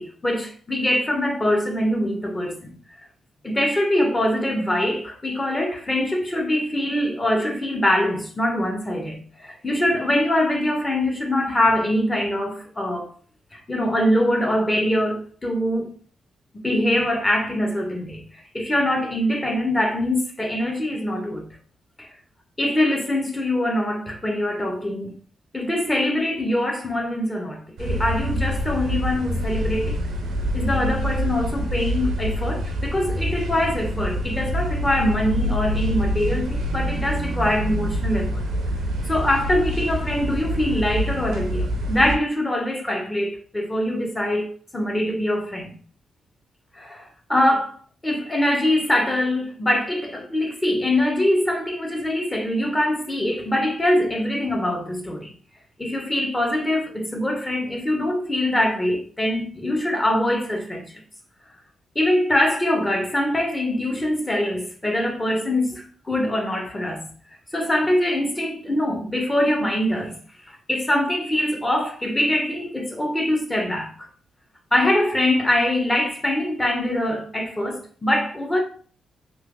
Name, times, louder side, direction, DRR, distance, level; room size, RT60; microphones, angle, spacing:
voice 1, 0.0-2.7 3.4-13.1 13.5-15.9 16.6-21.5 22.0-22.1 22.6-25.1 25.5-30.0 30.5-38.4 39.1-45.8 46.7-47.8 48.0-55.3 55.8-60.8 61.9-67.1 67.5-70.2 70.5-74.1 74.7-78.6, left 1 dB, 20° left, 0.8 m, -23 dB
sound 1, 27.8-42.1, equal, 75° right, 0.6 m, -26 dB
3.0 x 2.8 x 2.5 m
supercardioid pair, 45°, 0 cm